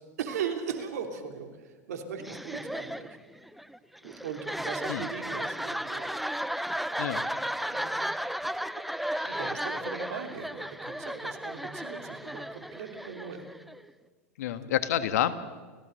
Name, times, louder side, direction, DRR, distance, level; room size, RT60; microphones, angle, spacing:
voice 1, 0.2-3.2 4.0-6.2 7.7-7.9 8.7-8.8 9.2-13.4 14.6-14.7, right 7 dB, 75° right, 6 dB, 3.1 m, -38 dB
sound 1, 2.2-13.9, equal, ahead, 0.8 m, -34 dB
voice 2, 14.4-15.3, left 11 dB, 75° left, 12 dB, 1.5 m, -29 dB
29.5 x 15.5 x 6.6 m, 1.4 s
hypercardioid pair, 100°, 9 cm